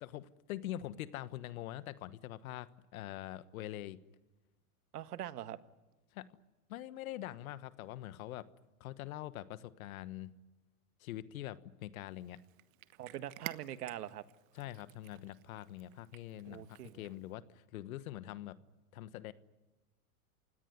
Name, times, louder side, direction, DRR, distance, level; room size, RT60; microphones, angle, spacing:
voice 1, 0.0-4.0 6.1-6.3 6.7-8.5 8.8-10.3 11.0-12.4 14.5-18.6 18.9-19.3, left 14 dB, 65° left, 15 dB, 1.3 m, -44 dB
voice 2, 4.9-5.6 13.0-14.2 16.5-17.0, right 12 dB, 80° right, 13 dB, 1.5 m, -43 dB
Cat, 12.1-17.3, right 16 dB, 60° right, 1.3 m, -52 dB
29.0 x 18.0 x 9.6 m, 1.2 s
hypercardioid pair, 135°, 45 cm